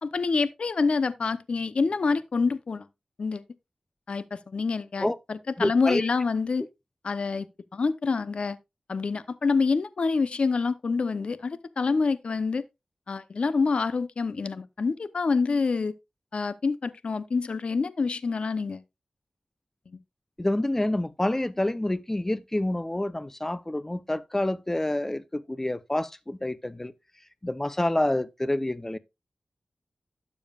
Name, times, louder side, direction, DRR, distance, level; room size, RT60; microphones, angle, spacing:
voice 1, 0.0-2.9 3.2-3.4 4.1-6.6 7.0-7.5 7.7-8.6 8.9-12.7 13.1-15.9 16.3-18.8 19.9-20.0, left 4 dB, 65° left, 0.6 m, -27 dB
voice 2, 5.6-6.1 20.4-26.9 27.4-29.0, left 1 dB, 20° left, 0.7 m, -28 dB
12.0 x 7.1 x 2.3 m
wide cardioid pair, 75°, 2 cm